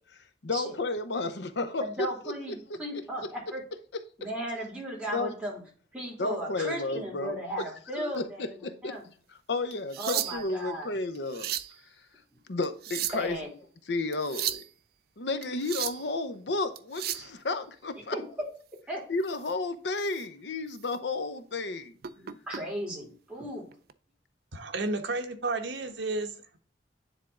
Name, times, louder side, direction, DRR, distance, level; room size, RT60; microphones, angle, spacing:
voice 1, 0.4-1.8 5.1-5.3 6.2-7.6 8.0-8.2 8.6-8.9 9.5-11.5 12.5-13.4 13.9-14.6 15.2-18.2 19.1-21.9, left 3 dB, 70° left, 0.8 m, -32 dB
voice 2, 1.8-3.6 4.2-5.6 5.9-9.0 10.0-10.9 13.1-13.5 18.1-18.5 18.9-19.0 22.2-23.7, right 1 dB, 5° right, 2.7 m, -36 dB
sound 1, 9.7-10.6 11.1-11.7 12.6-13.4 14.1-14.7 15.4-16.1 16.8-17.3 19.3-19.5 20.0-20.2 20.7-20.8 22.0-22.6 23.7-23.9, right 12 dB, 55° right, 0.4 m, -34 dB
voice 3, 24.5-26.6, right 2 dB, 75° right, 1.1 m, -32 dB
10.0 x 3.6 x 3.6 m
head